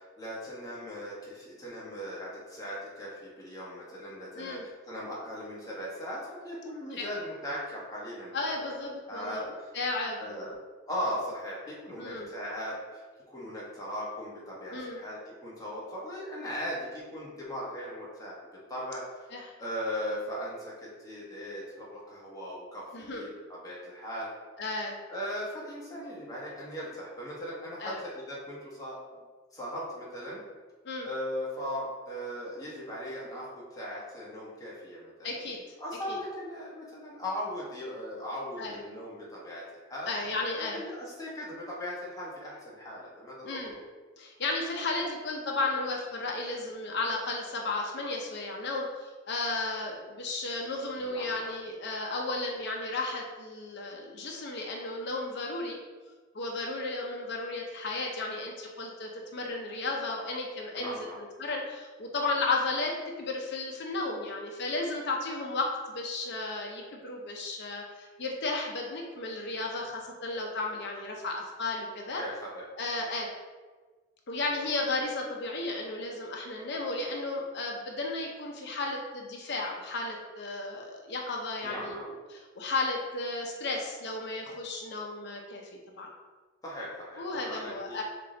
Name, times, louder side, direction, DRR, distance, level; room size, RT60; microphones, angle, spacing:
voice 1, 0.2-8.3 8.6-8.8 9.1-9.4 10.2-10.5 10.9-18.4 18.7-19.0 19.6-24.3 25.1-29.0 29.5-30.4 31.0-35.1 35.8-40.1 40.6-43.8 51.0-51.5 60.8-61.2 72.1-72.6 81.6-82.0 86.6-88.0, equal, 20° left, -6 dB, 1.1 m, -38 dB
voice 2, 4.3-4.7 6.9-7.1 8.3-10.5 12.0-12.3 14.7-15.0 19.3-19.5 22.9-23.2 24.6-25.0 27.8-28.0 30.8-31.1 35.2-35.6 36.1-36.2 38.6-38.8 40.1-40.8 43.4-43.7 44.2-55.8 56.3-72.2 72.8-73.3 74.3-85.6 86.0-86.1 87.2-88.0, left 2 dB, 55° left, 0 dB, 0.6 m, -34 dB
3.8 x 3.7 x 3.8 m, 1.4 s
head